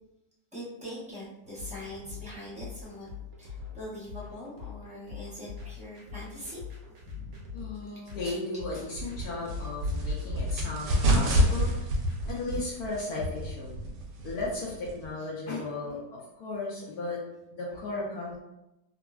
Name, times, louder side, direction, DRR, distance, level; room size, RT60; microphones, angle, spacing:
voice 1, 0.5-3.1 3.4-6.6 7.0-7.4, equal, 10° right, -8 dB, 0.4 m, -42 dB
sound 1, 1.6-12.3, left 7 dB, 60° right, 0.8 m, -43 dB
voice 2, 7.5-11.9 12.2-13.8 14.2-17.2 17.5-18.4, left 2 dB, 70° left, -4 dB, 1.0 m, -35 dB
sound 2, 8.9-15.1, equal, 80° right, 1.2 m, -28 dB
3.5 x 2.0 x 2.3 m, 0.92 s
omnidirectional pair, 1.8 m